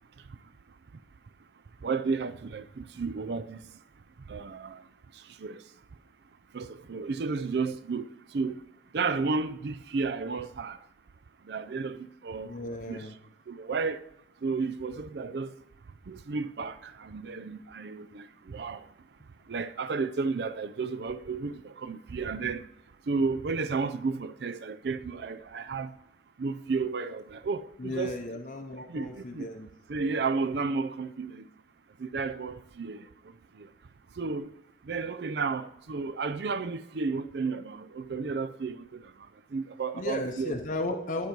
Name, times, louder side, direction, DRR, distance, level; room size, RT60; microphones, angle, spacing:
voice 1, 1.8-3.7 4.3-4.9 5.1-5.7 6.5-8.7 8.9-10.8 11.4-13.1 13.5-14.0 14.4-15.5 16.1-18.9 19.5-22.7 23.0-25.9 26.4-28.2 28.9-29.5 29.9-31.5 32.0-33.7 34.1-34.5 34.8-40.6, right 4 dB, 65° right, 0.4 m, -33 dB
voice 2, 12.4-13.1 27.8-29.7 39.9-41.3, left 2 dB, 45° left, 0.7 m, -35 dB
11.5 x 4.6 x 5.3 m
head